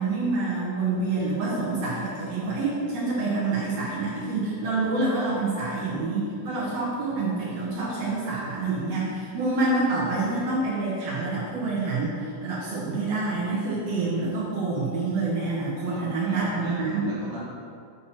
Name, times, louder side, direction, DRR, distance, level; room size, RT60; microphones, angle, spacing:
voice 1, 0.0-17.1, right 3 dB, 85° right, -7 dB, 1.4 m, -27 dB
voice 2, 15.8-17.4, right 2 dB, 50° right, -6 dB, 2.0 m, -38 dB
8.4 x 4.4 x 4.3 m, 2.4 s
omnidirectional pair, 4.6 m